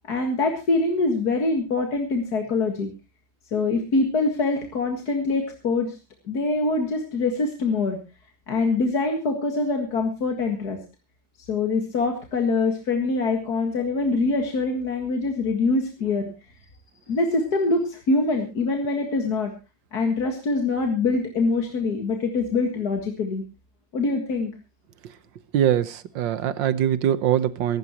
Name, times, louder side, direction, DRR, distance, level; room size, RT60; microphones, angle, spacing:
voice 1, 0.0-2.9 3.5-6.0 6.3-8.0 8.5-10.8 11.5-16.3 17.1-19.5 19.9-23.4 23.9-24.5, left 3 dB, 55° left, 3 dB, 2.3 m, -24 dB
voice 2, 25.5-27.8, right 10 dB, 80° right, 15 dB, 1.7 m, -22 dB
23.5 x 12.5 x 3.0 m, 0.29 s
omnidirectional pair, 2.0 m